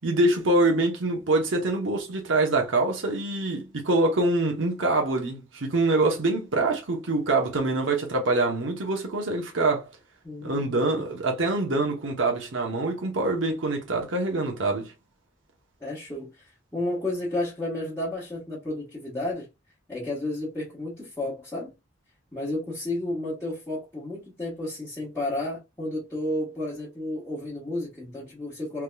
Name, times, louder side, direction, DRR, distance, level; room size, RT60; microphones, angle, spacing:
voice 1, 0.0-9.9 10.4-14.9, right 2 dB, 75° right, 0.9 m, -25 dB
voice 2, 10.2-11.2 15.8-19.5 19.9-21.7 22.3-28.8, left 1 dB, 15° left, 1.2 m, -32 dB
3.4 x 2.9 x 2.2 m
head